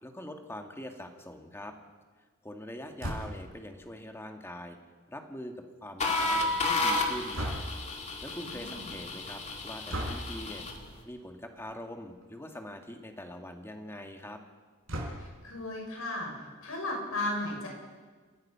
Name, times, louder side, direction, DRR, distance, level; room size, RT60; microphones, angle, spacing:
voice 1, 0.0-1.7 2.4-4.8 5.1-7.5 8.2-10.6 11.1-14.4, left 1 dB, 10° left, 4 dB, 1.9 m, -43 dB
sound 1, 3.0-3.5 7.3-7.9 9.9-10.3 11.6-11.8 12.2-12.3 12.5-12.6 14.9-15.5, right 1 dB, 75° right, 4.9 m, -36 dB
sound 2, 6.0-10.8, left 2 dB, 35° left, 2.4 m, -32 dB
voice 2, 8.4-8.8 15.4-16.3 16.6-17.7, left 2 dB, 90° left, 0 dB, 6.6 m, -34 dB
30.0 x 15.5 x 5.7 m, 1.4 s
head